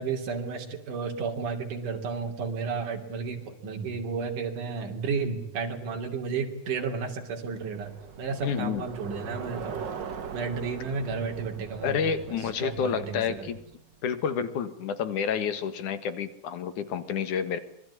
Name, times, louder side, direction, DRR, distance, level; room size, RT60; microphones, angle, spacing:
voice 1, 0.0-9.8 10.3-13.5, right 5 dB, 75° right, 3 dB, 4.4 m, -32 dB
Bicycle, 7.4-13.9, right 6 dB, 45° right, 1.7 m, -41 dB
voice 2, 8.4-8.9 11.8-13.6 14.0-17.6, left 7 dB, 70° left, 11 dB, 3.0 m, -29 dB
26.0 x 21.0 x 9.6 m, 0.70 s
omnidirectional pair, 3.6 m